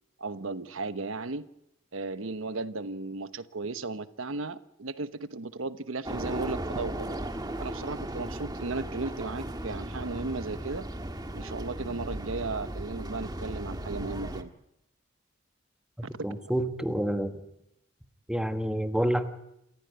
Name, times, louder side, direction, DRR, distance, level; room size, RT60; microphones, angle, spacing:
voice 1, 0.2-1.5 1.9-7.1 7.6-10.8 11.3-14.5 16.2-16.4, right 3 dB, 80° right, 13 dB, 1.0 m, -35 dB
sound 1, 6.0-14.4, right 1 dB, 20° right, 1.5 m, -36 dB
voice 2, 16.2-17.4 18.3-19.4, right 1 dB, 5° right, 8 dB, 1.4 m, -28 dB
28.0 x 15.5 x 9.4 m, 0.83 s
head